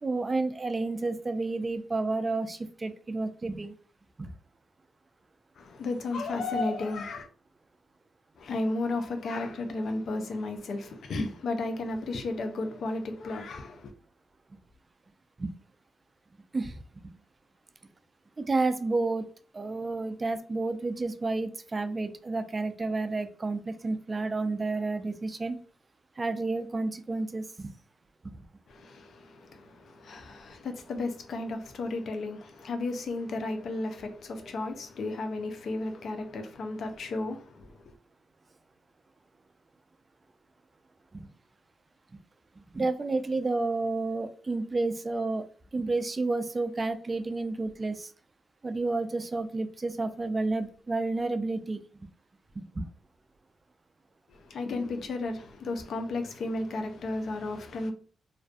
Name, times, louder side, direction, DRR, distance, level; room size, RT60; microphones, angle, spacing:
voice 1, 0.0-3.7 4.2-4.3 15.4-15.5 16.5-16.8 18.4-19.2 19.5-25.6 26.2-27.7 28.2-28.3 41.1-41.3 42.7-45.4 45.7-48.1 48.6-52.1 52.6-52.9, right 3 dB, 35° right, 0.3 m, -30 dB
voice 2, 5.6-7.3 8.4-13.9 28.7-37.9 54.3-57.9, left 2 dB, 70° left, 0.4 m, -33 dB
2.4 x 2.2 x 2.4 m
supercardioid pair, 60°, 0 cm